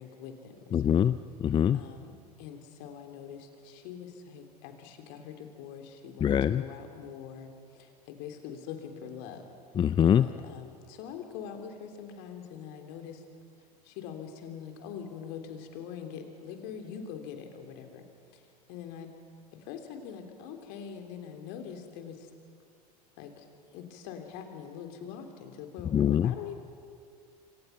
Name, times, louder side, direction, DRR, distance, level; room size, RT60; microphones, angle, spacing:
voice 1, 0.0-1.1 1.7-2.1 2.4-9.5 10.2-13.2 13.8-18.0 18.3-19.1 19.5-22.3 23.2-23.5 23.7-26.5, left 7 dB, 55° left, 5 dB, 3.3 m, -43 dB
voice 2, 0.7-1.8 6.2-6.6 9.8-10.3 25.9-26.3, left 9 dB, 25° left, 14 dB, 0.5 m, -24 dB
27.5 x 25.0 x 5.9 m, 2.2 s
figure-of-eight pair, 80°, 20 cm